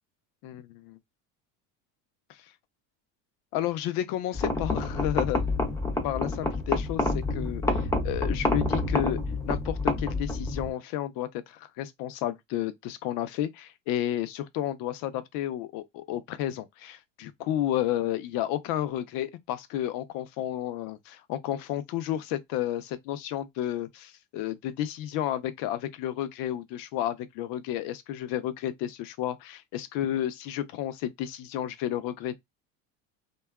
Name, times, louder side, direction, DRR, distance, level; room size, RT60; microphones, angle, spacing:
voice 1, 0.4-1.0 2.3-2.5 3.5-5.4 6.0-9.2 9.5-32.3, left 12 dB, 60° left, 0.5 m, -32 dB
sound 1, 4.3-10.7, left 2 dB, 10° left, 0.5 m, -28 dB
2.7 x 2.3 x 2.2 m
supercardioid pair, 105°, 39 cm